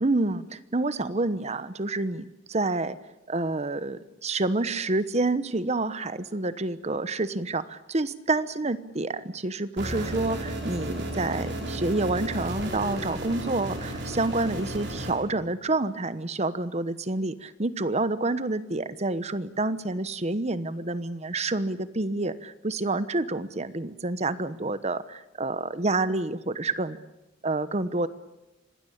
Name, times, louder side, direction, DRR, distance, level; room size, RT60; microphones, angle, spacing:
voice 1, 0.0-3.0 3.3-27.0 27.4-28.1, right 2 dB, 35° right, 14 dB, 1.0 m, -28 dB
sound 1, 9.8-15.1, right 1 dB, 65° right, 6.4 m, -33 dB
26.0 x 19.5 x 8.7 m, 0.97 s
head